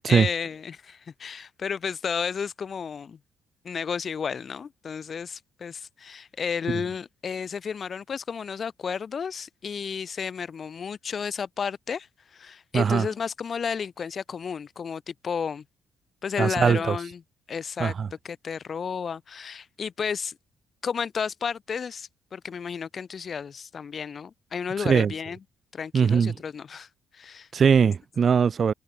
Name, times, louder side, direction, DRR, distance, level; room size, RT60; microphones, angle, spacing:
voice 1, 0.0-3.2 3.6-15.6 16.2-17.2 17.5-17.9 18.2-20.4 20.8-25.4 25.7-26.9 27.1-27.5 27.8-27.9, left 6 dB, 45° left, 7.3 m, -32 dB
voice 2, 12.7-13.1 16.4-17.0 17.8-18.1 24.8-25.1 25.9-26.3 27.5-28.7, right 6 dB, 45° right, 6.5 m, -21 dB
cardioid pair, 90°, 0 cm